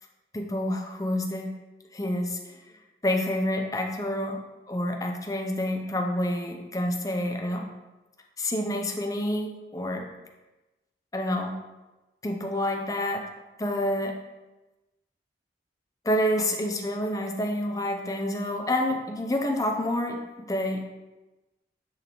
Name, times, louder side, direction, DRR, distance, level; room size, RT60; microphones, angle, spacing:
voice 1, 0.3-1.6 1.9-2.4 3.0-4.4 4.7-7.7 8.4-10.1 11.1-11.5 12.2-13.2 13.6-14.1 16.0-20.2 20.5-20.8, left 1 dB, 20° left, 3 dB, 0.6 m, -28 dB
9.6 x 4.1 x 3.1 m, 1.1 s
head